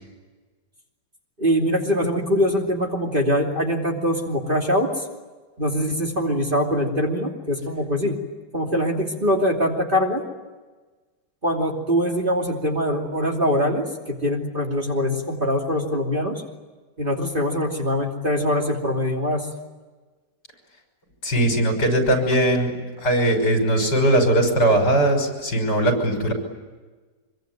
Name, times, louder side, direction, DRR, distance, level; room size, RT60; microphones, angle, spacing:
voice 1, 1.4-5.0 5.6-8.2 8.5-10.2 11.4-16.4 17.0-19.5, equal, 25° right, 1 dB, 3.0 m, -23 dB
voice 2, 21.2-22.7 23.0-26.3, right 1 dB, 60° left, 5 dB, 6.4 m, -19 dB
25.5 x 23.5 x 9.2 m, 1.3 s
omnidirectional pair, 2.0 m